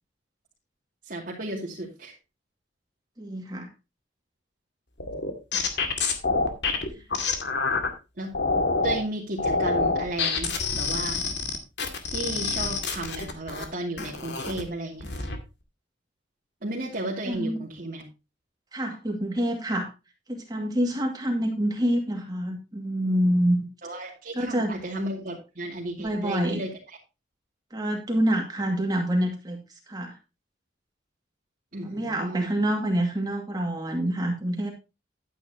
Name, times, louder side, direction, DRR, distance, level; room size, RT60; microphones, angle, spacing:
voice 1, 1.1-2.1 5.5-5.6 8.2-8.3 8.8-11.2 12.1-15.3 16.6-18.0 23.8-27.0 31.7-32.5, right 1 dB, 50° right, -5 dB, 2.5 m, -34 dB
voice 2, 3.2-3.7 17.3-17.6 18.7-19.9 20.3-23.6 24.3-24.7 26.0-26.6 27.7-30.1 31.8-34.7, equal, 20° right, 1 dB, 2.2 m, -27 dB
sound 1, 5.0-7.9 8.3-9.0 9.4-13.6 14.0-14.6 15.0-15.4, left 4 dB, 65° left, 2.2 m, -27 dB
12.0 x 9.4 x 2.8 m, 0.28 s
head